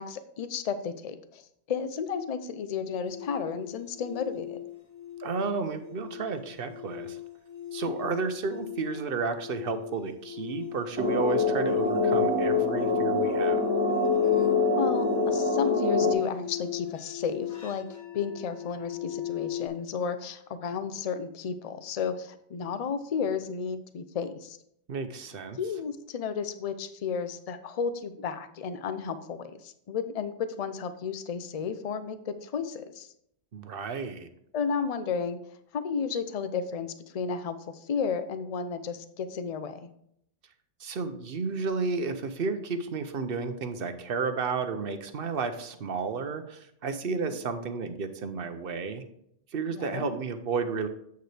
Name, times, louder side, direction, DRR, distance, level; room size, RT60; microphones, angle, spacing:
voice 1, 0.0-1.4 1.7-4.6 8.0-8.1 14.7-17.9 18.1-24.6 25.6-33.1 34.5-35.4 35.7-39.9 47.0-47.4 49.7-50.1, left 6 dB, 40° left, 11 dB, 0.6 m, -33 dB
sound 1, 3.0-19.7, left 12 dB, 15° left, 1.7 m, -39 dB
voice 2, 5.2-7.2 7.7-13.7 24.9-25.6 33.5-34.3 40.8-49.0 49.5-50.9, right 4 dB, 55° right, 9 dB, 0.9 m, -32 dB
sound 2, 11.0-16.1, left 3 dB, 70° right, 1.6 m, -25 dB
8.1 x 6.6 x 3.3 m, 0.72 s
omnidirectional pair, 1.2 m